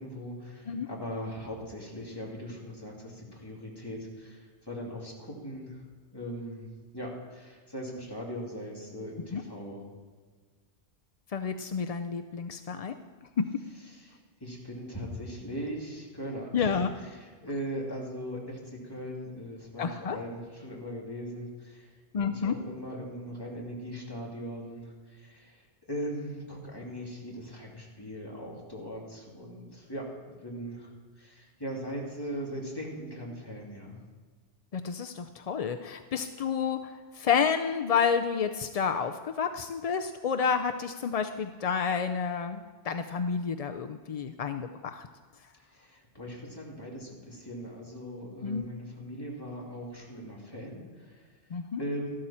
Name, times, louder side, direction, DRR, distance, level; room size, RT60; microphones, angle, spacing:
voice 1, 0.0-5.8 6.1-9.8 13.9-22.0 22.2-34.0 45.7-51.3 51.8-52.2, equal, 20° left, -3 dB, 2.7 m, -40 dB
voice 2, 11.3-13.0 13.4-13.6 16.5-16.9 19.8-20.2 22.1-22.5 34.7-45.1 48.4-48.7 51.5-51.8, left 6 dB, 55° left, 7 dB, 0.4 m, -30 dB
13.5 x 12.5 x 4.3 m, 1.5 s
omnidirectional pair, 1.2 m